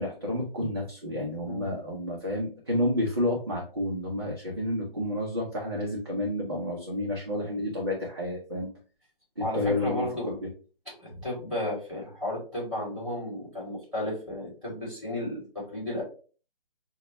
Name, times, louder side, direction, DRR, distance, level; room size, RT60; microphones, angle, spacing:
voice 1, 0.0-8.7 9.4-10.4, left 1 dB, 25° right, -3 dB, 0.5 m, -30 dB
voice 2, 9.4-10.4 10.9-16.0, left 1 dB, ahead, -7 dB, 2.0 m, -33 dB
5.0 x 2.1 x 2.9 m, 0.38 s
hypercardioid pair, 170°, 29 cm